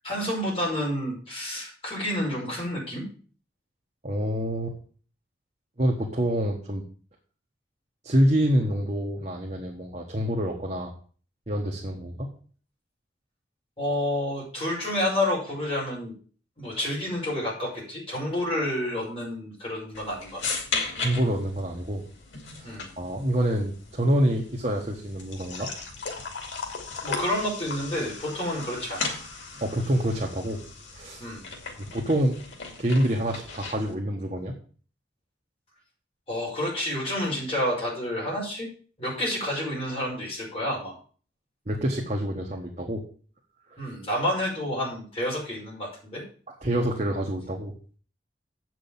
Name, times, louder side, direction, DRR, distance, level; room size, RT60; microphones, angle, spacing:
voice 1, 0.0-3.1 13.8-16.1 16.6-20.6 22.6-22.9 27.0-29.0 31.2-31.4 36.3-38.7 39.0-40.9 43.8-46.2, left 1 dB, 30° left, -4 dB, 5.5 m, -29 dB
voice 2, 4.0-4.7 5.8-6.8 8.0-10.9 11.5-12.3 21.0-22.0 22.5-22.7 23.0-25.7 29.6-30.6 30.9-31.2 31.8-32.4 32.8-34.5 41.7-43.0 43.7-43.9 46.6-47.7, equal, 35° right, 0 dB, 1.3 m, -26 dB
sound 1, 19.9-33.9, left 4 dB, 85° left, 2.6 m, -37 dB
8.0 x 6.2 x 7.1 m, 0.42 s
head